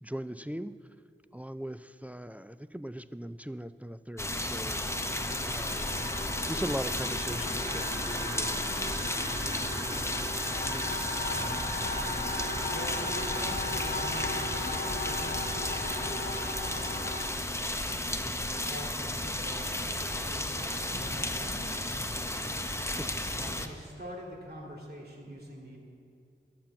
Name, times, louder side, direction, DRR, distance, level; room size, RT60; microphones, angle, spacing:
voice 1, 0.0-0.8 1.3-4.8 5.4-5.9 6.5-9.2 22.7-23.1, equal, 5° right, 13 dB, 0.3 m, -39 dB
sound 1, 4.2-23.7, left 1 dB, 15° left, 0.7 m, -33 dB
sound 2, 4.7-17.3, left 2 dB, 45° left, 1.3 m, -37 dB
voice 2, 10.7-11.0 11.3-11.5 12.7-15.7 15.9-16.8 18.5-21.7 23.3-25.8, equal, 50° right, -2 dB, 2.4 m, -45 dB
12.5 x 5.9 x 7.5 m, 2.5 s
wide cardioid pair, 50°, 20 cm